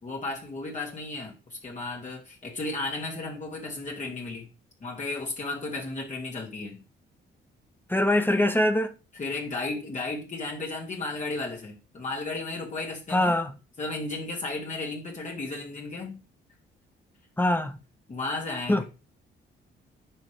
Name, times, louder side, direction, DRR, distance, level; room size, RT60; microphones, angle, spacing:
voice 1, 0.0-4.5 4.8-6.8 9.1-13.3 13.8-16.2 18.1-18.8, left 2 dB, 40° left, 2.3 m, -34 dB
voice 2, 7.9-8.9 13.1-13.5 17.4-17.8 18.7-18.8, left 1 dB, 10° left, 0.8 m, -23 dB
10.0 x 5.5 x 3.4 m
cardioid pair, 90°, 20 cm